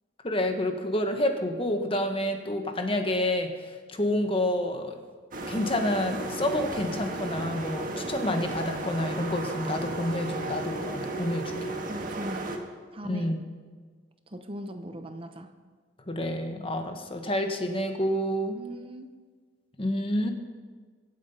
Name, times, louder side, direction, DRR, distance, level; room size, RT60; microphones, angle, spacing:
voice 1, 0.2-3.5 3.9-5.0 5.5-11.4 13.0-13.4 16.1-18.6 19.8-20.3, left 1 dB, 30° left, 5 dB, 1.3 m, -28 dB
sound 1, 5.3-12.6, right 2 dB, 45° right, 1.7 m, -34 dB
voice 2, 11.9-12.6 12.9-13.3 14.3-15.5 18.5-19.1, right 1 dB, 30° right, 7 dB, 0.8 m, -39 dB
24.0 x 8.4 x 5.6 m, 1.5 s
head